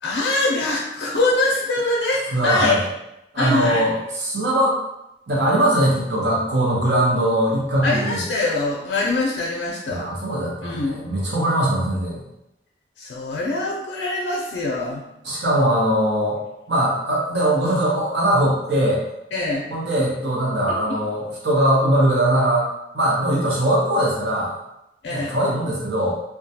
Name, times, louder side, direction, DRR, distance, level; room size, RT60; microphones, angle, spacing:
voice 1, 0.0-2.9 3.4-3.8 7.8-10.1 10.6-11.0 13.0-15.0 19.3-19.7 25.0-25.4, left 2 dB, 75° left, -3 dB, 0.4 m, -23 dB
voice 2, 2.3-2.8 3.3-4.8 5.3-8.2 9.9-12.2 15.2-16.4 16.7-19.0 19.7-22.7 22.9-24.5 25.1-26.2, right 1 dB, 70° right, -4 dB, 0.8 m, -21 dB
2.3 x 2.1 x 2.7 m, 0.86 s
head